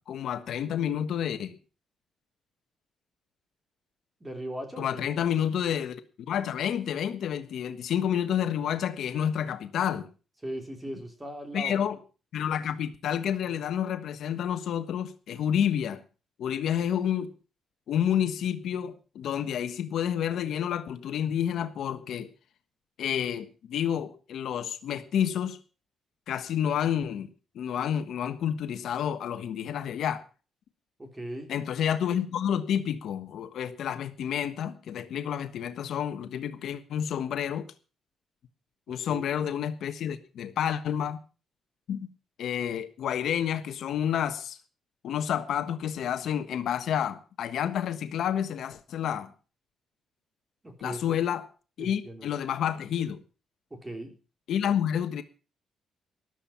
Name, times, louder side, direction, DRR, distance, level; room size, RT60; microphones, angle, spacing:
voice 1, 0.0-1.6 4.8-10.1 11.5-12.0 12.3-16.0 16.4-17.3 17.9-22.3 23.0-25.6 26.3-27.3 27.5-30.2 31.5-37.7 38.9-41.2 41.9-42.1 42.4-44.6 45.0-49.3 50.8-51.5 51.8-53.2 54.5-55.2, left 9 dB, 70° left, 1.3 m, -29 dB
voice 2, 4.2-5.1 10.4-11.7 31.0-31.5 39.1-39.3 50.6-51.2 51.8-52.3 53.7-54.1, right 1 dB, 15° right, 3.5 m, -38 dB
13.5 x 12.0 x 5.7 m
cardioid pair, 140°, 0 cm